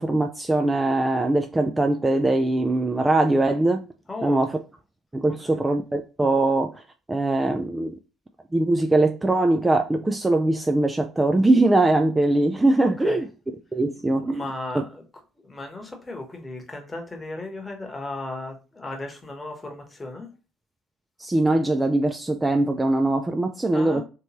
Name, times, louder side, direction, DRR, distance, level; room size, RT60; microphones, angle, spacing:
voice 1, 0.0-3.8 4.2-4.5 5.1-6.7 7.1-7.9 8.5-13.3 13.7-14.4 21.2-24.0, right 2 dB, 15° right, 0.3 m, -21 dB
voice 2, 4.1-4.5 5.3-5.6 12.8-13.2 14.3-15.0 15.4-20.3 23.7-24.0, left 2 dB, 20° left, 1.1 m, -36 dB
3.1 x 3.0 x 2.9 m
figure-of-eight pair, 55°, 0 cm